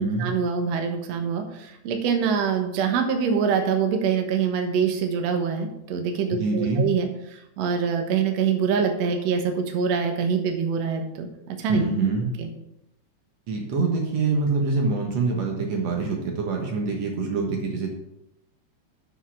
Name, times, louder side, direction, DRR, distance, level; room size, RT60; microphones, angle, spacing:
voice 1, 0.2-11.8 12.4-12.5, right 6 dB, 85° right, 4 dB, 1.4 m, -25 dB
voice 2, 6.3-6.9 11.7-12.3 13.5-17.9, right 4 dB, 65° right, 1 dB, 1.7 m, -25 dB
7.3 x 6.9 x 6.1 m, 0.82 s
omnidirectional pair, 4.9 m